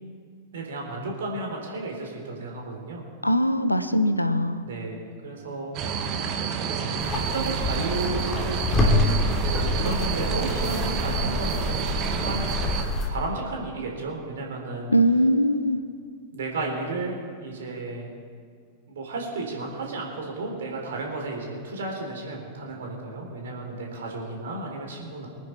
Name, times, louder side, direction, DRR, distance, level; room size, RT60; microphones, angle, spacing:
voice 1, 0.5-3.0 4.6-6.1 6.6-8.6 9.3-12.5 13.1-14.9 16.3-18.1 18.9-25.3, right 3 dB, 60° right, 0 dB, 3.7 m, -33 dB
voice 2, 3.2-4.7 14.9-15.8, equal, 90° left, 11 dB, 0.8 m, -21 dB
sound 1, 5.7-12.8, right 6 dB, 35° right, 1.6 m, -29 dB
sound 2, 7.0-13.1, left 2 dB, 20° left, 2.9 m, -26 dB
24.5 x 9.6 x 4.6 m, 2.1 s
figure-of-eight pair, 90°, 0 cm